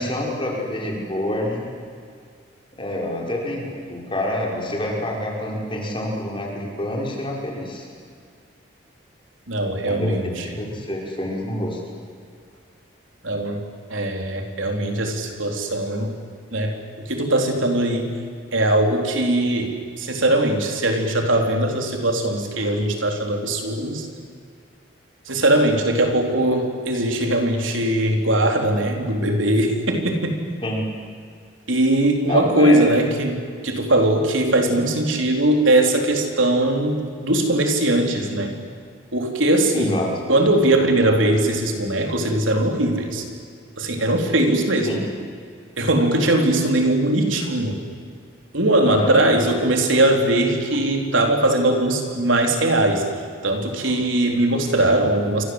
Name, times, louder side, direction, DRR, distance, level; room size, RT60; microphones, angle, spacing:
voice 1, 0.0-1.7 2.8-7.9 9.9-10.2 10.6-11.8 30.6-30.8 32.3-32.8 39.7-40.1 44.9-45.0 48.8-49.2 54.5-54.7, left 1 dB, 25° left, -1 dB, 5.4 m, -27 dB
voice 2, 9.5-10.4 13.2-13.6 13.9-16.1 16.5-18.1 18.5-24.1 25.3-30.4 31.7-38.5 39.1-40.0 40.3-43.2 43.8-45.0 45.8-47.8 48.5-53.0 53.4-55.4, right 1 dB, 80° right, 3 dB, 4.0 m, -20 dB
28.5 x 25.0 x 8.1 m, 2.1 s
head